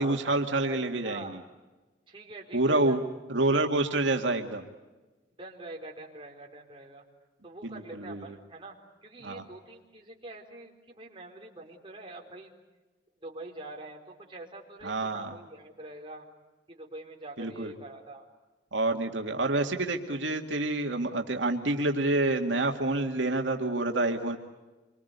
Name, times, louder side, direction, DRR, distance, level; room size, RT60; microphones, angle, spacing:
voice 1, 0.0-1.3 2.5-3.0 3.3-4.6 7.6-8.2 9.2-9.4 14.8-15.3 17.4-17.7 18.7-24.4, right 2 dB, 80° right, 3 dB, 2.1 m, -28 dB
voice 2, 1.0-1.4 2.1-3.0 5.4-7.0 7.4-12.5 13.2-16.3 16.7-18.2, right 2 dB, 30° right, 0 dB, 4.2 m, -45 dB
27.0 x 24.5 x 8.2 m, 1.1 s
head